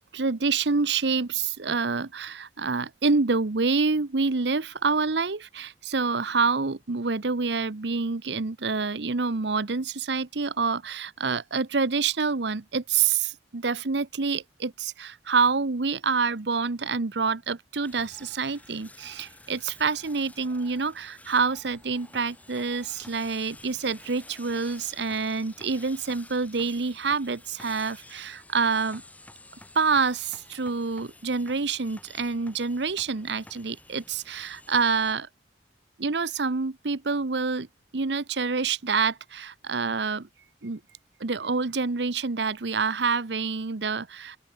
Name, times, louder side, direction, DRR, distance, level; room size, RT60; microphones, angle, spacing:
voice 1, 0.1-29.0 29.7-35.3 36.0-37.7 37.9-40.3 40.6-40.8 41.2-44.4, right 4 dB, 75° right, 0.9 m, -27 dB
sound 1, 17.8-35.1, left 2 dB, 10° left, 7.0 m, -51 dB
open air
head